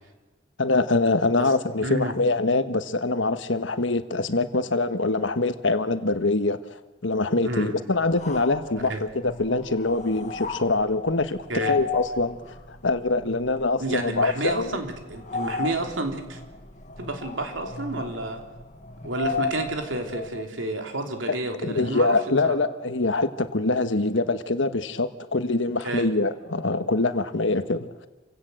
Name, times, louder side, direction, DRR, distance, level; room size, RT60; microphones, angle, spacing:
voice 1, 0.6-6.6 7.0-12.4 12.7-14.8 21.3-21.4 21.6-27.9, left 3 dB, 85° left, 10 dB, 1.4 m, -24 dB
voice 2, 1.8-2.1 7.4-7.7 8.8-9.0 11.5-11.7 13.8-16.4 17.0-18.4 19.0-22.1 22.4-22.5 25.8-26.1, right 2 dB, 90° right, 4 dB, 3.0 m, -30 dB
sound 1, 8.0-20.6, left 4 dB, 40° left, 1.8 m, -35 dB
27.5 x 16.5 x 7.8 m, 1.2 s
head